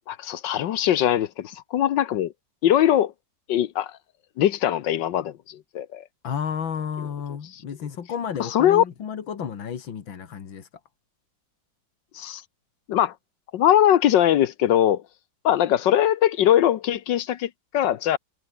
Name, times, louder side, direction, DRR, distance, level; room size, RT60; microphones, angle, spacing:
voice 1, 0.1-2.3 2.6-3.1 3.5-3.9 4.4-6.0 8.5-8.8 12.1-12.4 12.9-13.1 13.5-15.0 15.4-18.2, left 11 dB, 70° left, 1.5 m, -21 dB
voice 2, 6.2-10.7, left 7 dB, 85° left, 2.6 m, -32 dB
omnidirectional pair, 2.1 m